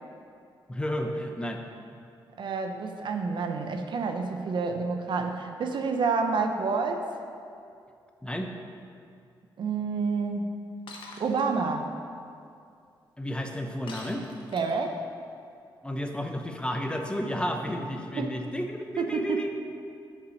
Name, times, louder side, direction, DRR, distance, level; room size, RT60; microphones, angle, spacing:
voice 1, 0.7-1.6 8.2-8.5 13.2-14.3 15.8-19.5, equal, 10° left, 3 dB, 0.8 m, -32 dB
voice 2, 2.4-7.1 9.6-10.5 11.2-11.9 14.5-15.0 18.1-18.3 19.0-19.4, right 4 dB, 65° right, 5 dB, 0.7 m, -28 dB
Shatter, 10.9-11.4 13.9-14.9, left 3 dB, 80° left, 1.1 m, -44 dB
6.8 x 5.5 x 6.4 m, 2.4 s
cardioid pair, 80°, 9 cm